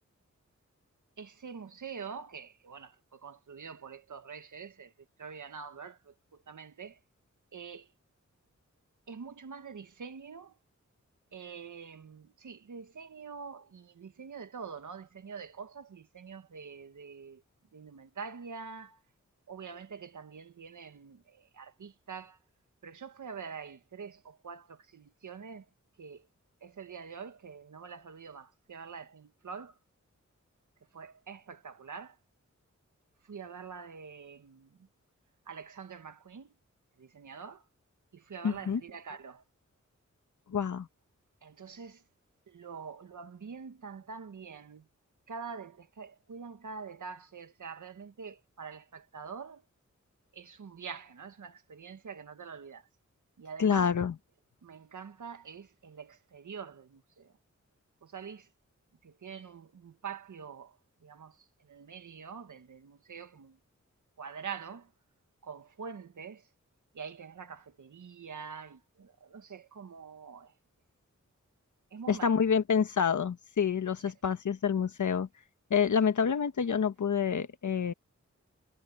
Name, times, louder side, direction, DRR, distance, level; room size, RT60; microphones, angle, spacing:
voice 1, 1.2-4.9 5.2-6.1 6.5-7.0 7.5-7.9 9.1-10.5 11.3-17.4 17.7-19.0 19.5-22.4 22.8-25.6 26.0-26.2 26.6-29.7 30.9-32.1 33.3-34.7 35.5-36.5 37.0-37.6 38.1-39.4 41.4-42.0 42.5-44.8 45.3-49.6 50.3-52.8 53.4-53.9 54.6-57.3 58.0-58.5 59.0-60.7 61.0-61.3 61.7-63.6 64.2-64.9 65.4-66.4 67.0-70.5 71.9-72.3, right 6 dB, 85° right, 1.8 m, -45 dB
voice 2, 38.4-38.8 40.5-40.9 53.6-54.2 72.1-75.3 75.7-77.9, left 7 dB, 80° left, 1.3 m, -27 dB
wide cardioid pair, 85°, 30 cm